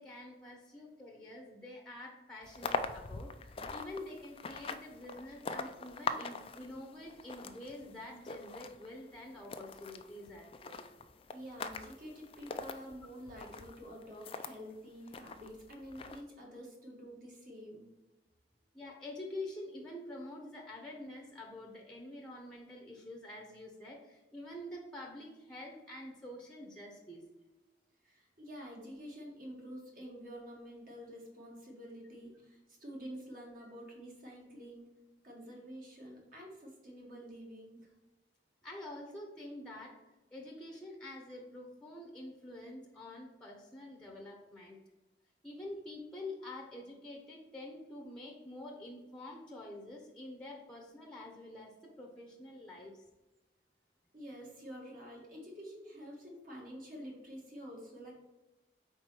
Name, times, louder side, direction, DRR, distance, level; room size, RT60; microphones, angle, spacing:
voice 1, 0.0-10.9 18.7-27.2 38.6-39.9 40.3-44.8 45.4-53.0, left 1 dB, 5° left, -1 dB, 0.8 m, -47 dB
sound 1, 2.4-14.6 15.1-16.2, left 4 dB, 30° left, 0.4 m, -43 dB
voice 2, 11.3-17.9 28.0-34.9 35.2-37.9 54.1-58.1, equal, 50° right, -2 dB, 1.9 m, -48 dB
4.5 x 4.2 x 5.8 m, 1.1 s
head